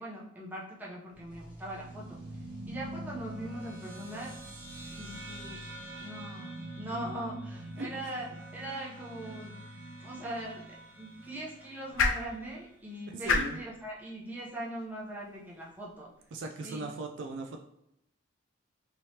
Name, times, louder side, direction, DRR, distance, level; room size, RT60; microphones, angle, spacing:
voice 1, 0.0-2.2 2.7-4.3 4.9-5.6 6.0-8.3 8.5-9.6 10.0-16.1 16.6-16.9, right 1 dB, 10° right, -5 dB, 0.6 m, -41 dB
sound 1, 1.1-6.6, right 1 dB, 15° left, 1.4 m, -53 dB
sound 2, 1.8-12.6, right 1 dB, 90° right, 0.9 m, -44 dB
voice 2, 7.8-8.2 13.1-13.6 16.3-17.6, right 2 dB, 60° right, 3 dB, 0.3 m, -39 dB
sound 3, 10.2-16.4, left 4 dB, 75° left, 0.5 m, -36 dB
3.2 x 2.9 x 2.8 m, 0.82 s
head